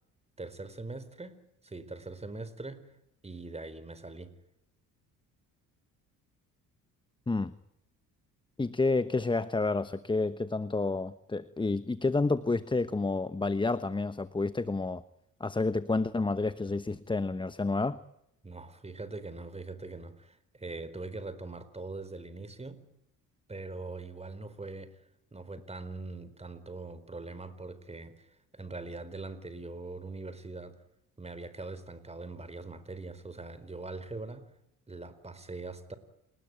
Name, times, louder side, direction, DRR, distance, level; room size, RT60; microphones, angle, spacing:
voice 1, 0.4-1.4 1.6-2.9 3.2-4.3 18.4-22.8 23.5-25.0 25.3-30.8 31.2-34.5 34.9-36.0, right 3 dB, 20° right, 13 dB, 4.3 m, -42 dB
voice 2, 8.6-15.0 15.4-18.0, left 3 dB, 15° left, 14 dB, 1.0 m, -29 dB
29.0 x 19.5 x 9.2 m, 0.83 s
cardioid pair, 90°, 33 cm